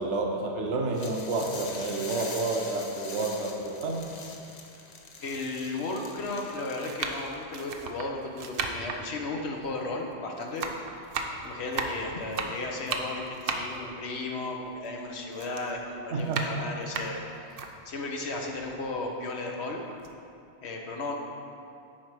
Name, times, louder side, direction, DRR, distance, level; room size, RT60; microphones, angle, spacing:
voice 1, 0.0-4.1 16.1-16.5, right 3 dB, 85° right, 2 dB, 1.1 m, -30 dB
sound 1, 0.9-7.4, left 3 dB, 45° left, 0.7 m, -43 dB
sound 2, 4.0-4.1 5.0-5.1 6.0-6.3 6.8-10.2 10.4-15.0 15.3-17.7 18.2-18.3 18.6-19.6 19.9-20.1, right 4 dB, 60° right, 0.8 m, -35 dB
voice 2, 5.2-10.7 11.4-19.8 20.6-21.1, left 2 dB, 70° left, 1 dB, 1.2 m, -35 dB
10.0 x 4.5 x 4.7 m, 2.6 s
omnidirectional pair, 1.2 m